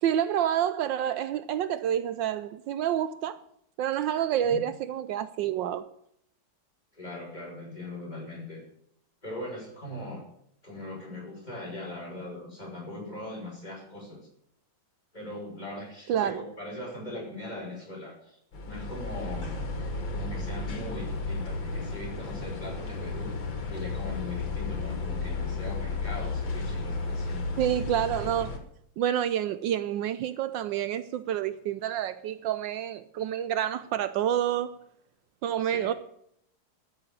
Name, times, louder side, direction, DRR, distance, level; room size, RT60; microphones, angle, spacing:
voice 1, 0.0-3.4 3.8-5.8 16.1-16.4 27.6-28.5 29.0-34.8 35.4-35.9, right 10 dB, 75° right, 1.3 m, -28 dB
voice 2, 6.9-8.6 9.2-10.2 10.6-14.3 15.1-18.4 18.6-19.6 20.1-23.3 23.7-27.6 35.6-35.9, left 1 dB, 20° left, 5.6 m, -40 dB
sound 1, 18.5-28.6, left 3 dB, 75° left, 2.7 m, -33 dB
13.5 x 6.9 x 8.7 m
omnidirectional pair, 2.1 m